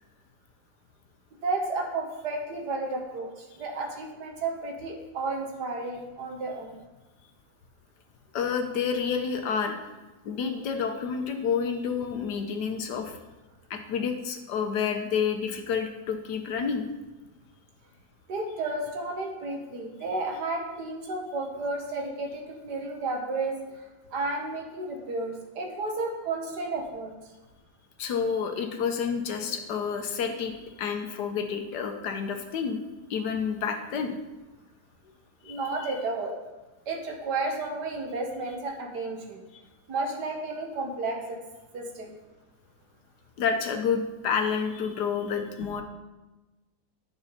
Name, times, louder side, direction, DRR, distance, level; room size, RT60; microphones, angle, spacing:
voice 1, 1.4-6.8 18.3-23.8 24.1-27.1 35.4-36.4 36.9-39.4 39.9-41.4 41.7-42.1, right 3 dB, 85° right, 2 dB, 2.0 m, -32 dB
voice 2, 8.3-9.9 10.2-13.2 13.7-16.8 28.0-30.5 30.8-32.8 33.1-34.2 35.4-36.0 43.4-45.8, left 6 dB, 85° left, 5 dB, 1.5 m, -29 dB
9.8 x 5.5 x 5.5 m, 1.1 s
omnidirectional pair, 1.7 m